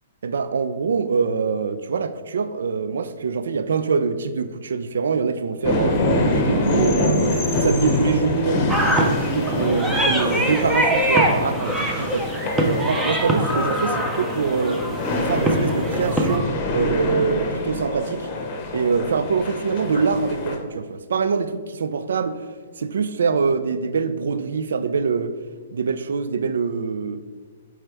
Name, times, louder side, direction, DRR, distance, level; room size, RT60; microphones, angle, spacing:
voice 1, 0.2-6.0 6.3-8.6 8.9-12.3 12.6-14.8 15.2-16.5 16.7-18.3 18.7-22.4 22.8-25.3 25.7-27.2, right 5 dB, 80° right, 11 dB, 0.4 m, -24 dB
sound 1, 5.6-20.6, left 1 dB, 20° left, 0.8 m, -25 dB
sound 2, 8.7-16.4, equal, 5° right, 0.5 m, -23 dB
7.5 x 4.6 x 3.4 m, 1.5 s
hypercardioid pair, 180°, 0 cm